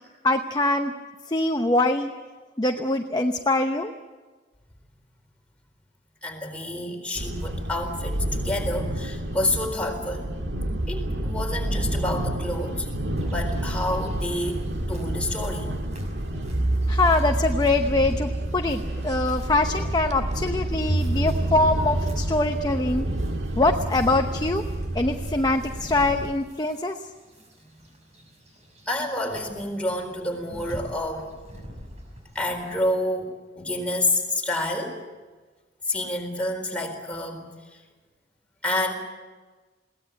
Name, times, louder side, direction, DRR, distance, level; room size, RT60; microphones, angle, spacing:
voice 1, 0.2-0.9 1.3-2.1 2.6-3.9 16.9-23.1 23.6-24.6 24.9-27.0, left 2 dB, 25° left, 5 dB, 0.9 m, -23 dB
voice 2, 6.2-10.3 10.9-12.9 13.2-14.6 14.9-15.7 28.9-31.3 32.3-35.0 35.8-37.8 38.6-38.9, left 1 dB, 5° left, 1 dB, 4.2 m, -28 dB
sound 1, 7.2-26.3, right 1 dB, 75° right, 1.8 m, -30 dB
sound 2, 13.2-32.8, equal, 40° right, 6.1 m, -49 dB
sound 3, 16.5-25.3, right 2 dB, 20° right, 2.1 m, -29 dB
22.0 x 17.5 x 9.0 m, 1.3 s
head